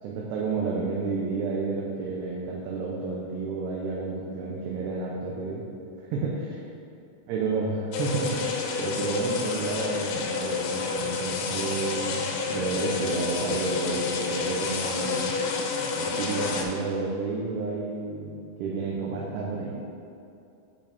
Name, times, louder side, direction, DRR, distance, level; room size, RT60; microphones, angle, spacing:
voice 1, 0.0-5.6 6.1-6.3 7.3-15.3 16.0-18.3 18.6-19.7, right 4 dB, 80° right, -3 dB, 2.8 m, -31 dB
sound 1, 7.9-16.6, left 5 dB, 80° left, 2.6 m, -29 dB
8.1 x 6.3 x 3.4 m, 2.6 s
omnidirectional pair, 5.0 m